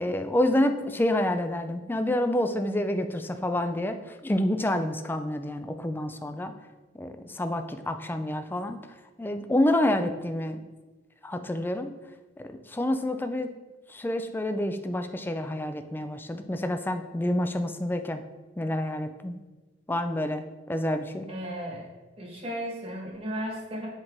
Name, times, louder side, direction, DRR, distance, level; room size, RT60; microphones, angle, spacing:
voice 1, 0.0-6.5 6.9-8.8 9.2-10.6 11.2-11.9 12.4-13.5 13.9-18.2 18.6-19.4 19.9-21.3, left 1 dB, 10° left, 8 dB, 0.3 m, -28 dB
voice 2, 21.3-21.9 22.2-23.9, equal, 35° right, -2 dB, 1.3 m, -35 dB
7.7 x 3.9 x 3.6 m, 1.2 s
head